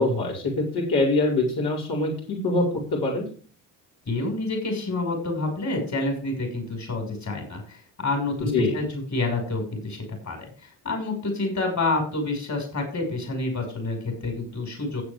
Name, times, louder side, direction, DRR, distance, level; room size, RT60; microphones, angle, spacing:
voice 1, 0.0-2.7 3.0-3.2 8.5-8.7, left 2 dB, 60° left, -3 dB, 5.2 m, -23 dB
voice 2, 4.1-15.0, left 2 dB, 40° left, 3 dB, 5.8 m, -28 dB
15.5 x 8.1 x 3.6 m, 0.40 s
hypercardioid pair, 55°, 43 cm